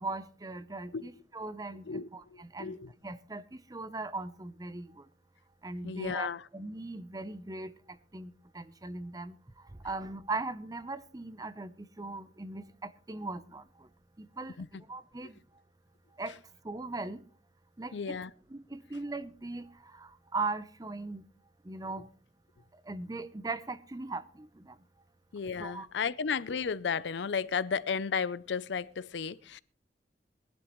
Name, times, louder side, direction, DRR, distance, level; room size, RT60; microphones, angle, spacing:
voice 1, 0.0-1.8 2.1-2.7 3.0-5.1 5.6-7.8 8.1-9.4 9.8-13.9 14.2-14.6 14.9-15.4 16.2-16.4 16.6-17.2 17.8-18.2 18.5-21.2 21.6-22.1 22.9-24.8 25.6-25.9, right 3 dB, 20° right, 0.7 m, -39 dB
voice 2, 1.9-2.9 5.8-6.4 14.6-14.8 15.2-15.3 17.9-18.3 25.3-29.6, left 6 dB, 85° left, 0.5 m, -34 dB
20.5 x 11.5 x 3.1 m
head